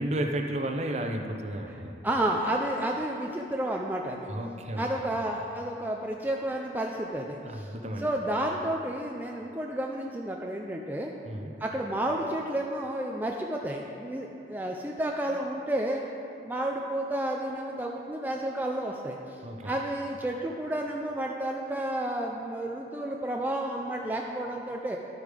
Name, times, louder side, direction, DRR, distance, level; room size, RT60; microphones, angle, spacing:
voice 1, 0.0-2.0 4.2-4.8 7.4-8.1 11.2-11.5 19.4-19.7, right 1 dB, 40° right, 4 dB, 0.7 m, -32 dB
voice 2, 2.0-4.3 4.8-7.7 8.0-11.1 11.6-16.1 16.4-25.0, right 1 dB, 10° right, 0 dB, 0.4 m, -31 dB
11.0 x 8.2 x 5.0 m, 2.9 s
head